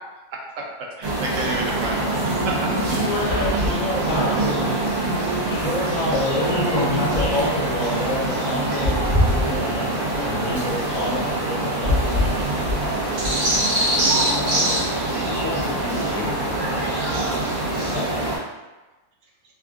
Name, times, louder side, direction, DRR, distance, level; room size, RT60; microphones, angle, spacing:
sound 1, 1.0-18.4, right 1 dB, 50° right, 1.1 m, -23 dB
voice 1, 1.0-2.7, right 2 dB, 70° right, -1 dB, 0.9 m, -30 dB
voice 2, 2.7-4.8 5.5-12.6, left 1 dB, 70° left, -6 dB, 1.4 m, -28 dB
voice 3, 6.0-7.0 14.1-14.9 15.3-17.1 17.8-18.4, left 3 dB, 90° left, 1 dB, 1.0 m, -32 dB
3.5 x 2.4 x 2.4 m, 1.1 s
omnidirectional pair, 1.4 m